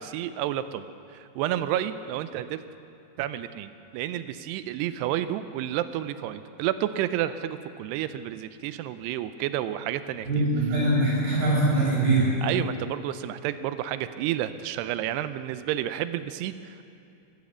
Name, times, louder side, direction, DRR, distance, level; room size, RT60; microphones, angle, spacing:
voice 1, 0.0-2.6 3.2-10.5 12.4-16.8, right 12 dB, 85° right, 12 dB, 2.6 m, -30 dB
voice 2, 10.3-12.3, right 2 dB, 65° right, -5 dB, 7.0 m, -22 dB
14.5 x 13.5 x 7.2 m, 2.6 s
omnidirectional pair, 4.9 m